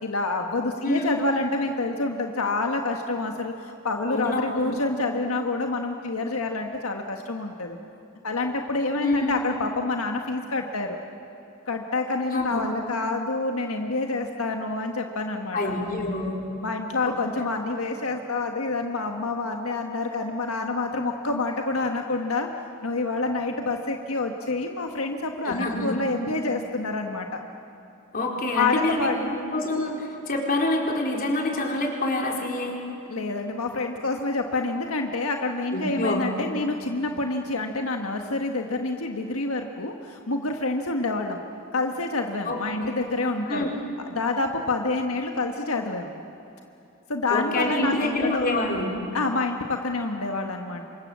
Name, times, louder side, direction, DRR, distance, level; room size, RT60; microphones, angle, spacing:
voice 1, 0.0-7.8 8.2-11.0 11.7-15.7 16.6-22.5 22.8-27.4 28.5-29.2 33.1-41.4 41.7-43.7 44.1-46.1 47.1-48.6 49.1-50.8, left 3 dB, 85° left, 3 dB, 1.5 m, -27 dB
voice 2, 4.1-4.7 9.0-9.4 12.3-12.6 15.5-16.4 25.4-26.0 28.1-32.8 35.7-36.2 42.5-42.9 43.5-43.8 47.3-48.9, left 2 dB, 45° left, 0 dB, 4.4 m, -27 dB
28.0 x 25.0 x 7.5 m, 2.7 s
head